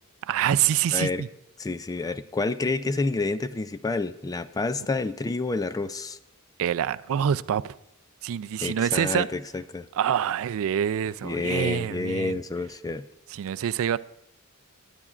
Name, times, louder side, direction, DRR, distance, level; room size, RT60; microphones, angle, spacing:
voice 1, 0.2-1.3 6.6-7.8 8.2-9.3 9.9-12.3 13.3-14.0, right 9 dB, 65° right, 0.3 m, -26 dB
voice 2, 0.9-1.2 1.6-6.2 8.6-9.9 11.2-13.1, left 3 dB, 15° left, 0.3 m, -29 dB
19.0 x 10.5 x 2.4 m
head